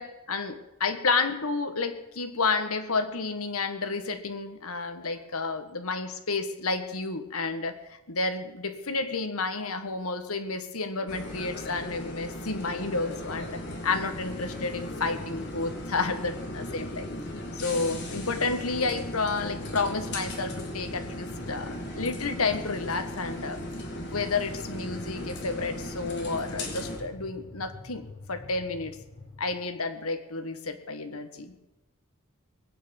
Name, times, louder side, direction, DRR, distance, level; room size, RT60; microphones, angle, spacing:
voice 1, 0.0-17.1 17.5-23.6 24.1-28.0 28.3-29.0 29.4-31.6, left 3 dB, 80° left, 8 dB, 1.7 m, -31 dB
sound 1, 11.1-27.0, left 1 dB, 55° left, 3.4 m, -37 dB
sound 2, 13.2-29.4, left 2 dB, 40° left, 5.5 m, -47 dB
20.5 x 9.5 x 7.2 m, 1.0 s
head